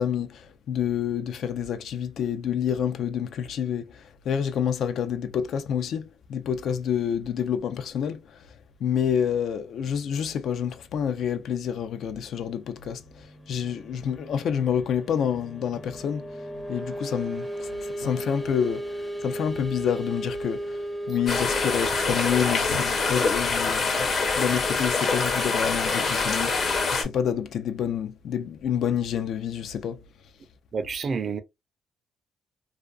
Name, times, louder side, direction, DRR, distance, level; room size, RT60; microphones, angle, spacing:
voice 1, 0.0-8.5 8.8-16.3 16.7-30.0, left 8 dB, 70° left, 0.4 m, -28 dB
sound 1, 12.3-24.9, right 1 dB, 10° left, 0.5 m, -36 dB
sound 2, 18.0-20.3 22.7-25.6, left 3 dB, 90° left, 1.1 m, -46 dB
sound 3, 21.3-27.0, left 4 dB, 50° left, 0.7 m, -25 dB
voice 2, 30.7-31.4, right 5 dB, 45° right, 0.4 m, -28 dB
2.4 x 2.3 x 2.3 m
cardioid pair, 90°, 0 cm